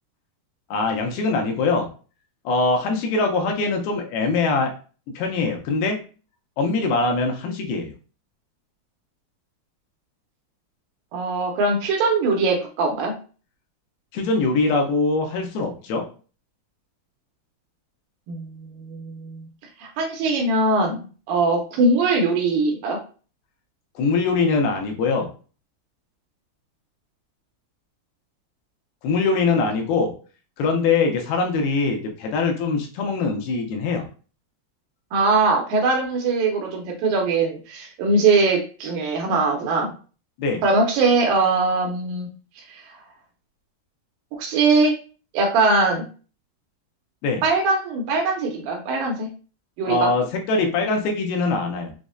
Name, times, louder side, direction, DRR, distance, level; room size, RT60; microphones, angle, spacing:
voice 1, 0.7-1.9 2.5-4.7 5.1-6.0 6.6-7.9 14.1-16.0 24.0-25.3 29.0-30.1 30.6-34.1 40.4-40.6 47.2-47.4 49.8-51.9, left 3 dB, 85° left, 3 dB, 2.5 m, -22 dB
voice 2, 11.1-13.1 18.3-19.4 19.8-21.0 21.3-23.0 35.1-39.9 40.6-42.3 42.7-42.8 44.4-44.9 45.3-46.1 47.4-49.3 49.8-50.1, right 3 dB, 80° right, 1 dB, 2.2 m, -21 dB
6.1 x 2.1 x 2.4 m, 0.37 s
omnidirectional pair, 4.5 m